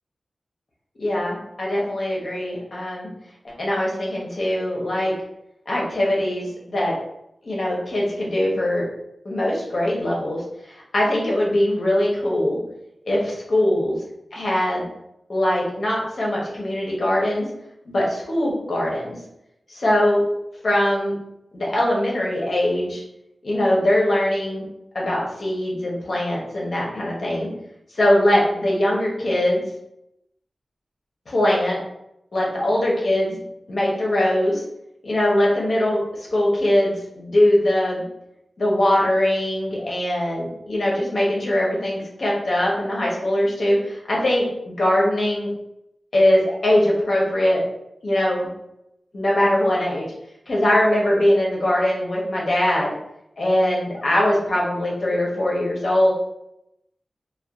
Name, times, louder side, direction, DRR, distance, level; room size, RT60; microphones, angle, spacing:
voice 1, 1.0-3.1 3.4-5.1 5.7-6.9 7.4-8.9 9.2-12.6 13.1-14.0 14.3-14.9 15.3-17.5 17.9-19.1 19.7-20.2 20.6-21.1 21.5-23.0 23.4-24.6 24.9-27.5 27.9-29.6 31.3-31.8 32.3-33.4 33.7-34.6 35.0-38.0 38.6-45.5 46.1-47.6 48.0-48.5 49.1-50.1 50.5-52.9 53.4-56.1, left 1 dB, 65° left, -3 dB, 0.7 m, -21 dB
2.5 x 2.2 x 2.3 m, 0.84 s
wide cardioid pair, 65°, 0 cm